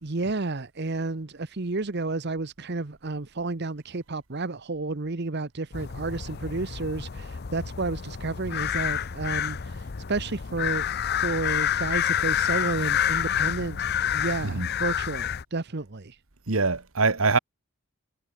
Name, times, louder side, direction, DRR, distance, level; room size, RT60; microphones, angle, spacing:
voice 1, 0.0-10.9 11.2-16.2, right 3 dB, 50° right, 1.0 m, -31 dB
sound 1, 5.7-15.4, left 9 dB, 50° left, 0.6 m, -28 dB
voice 2, 16.5-17.4, right 4 dB, 75° right, 1.7 m, -23 dB
head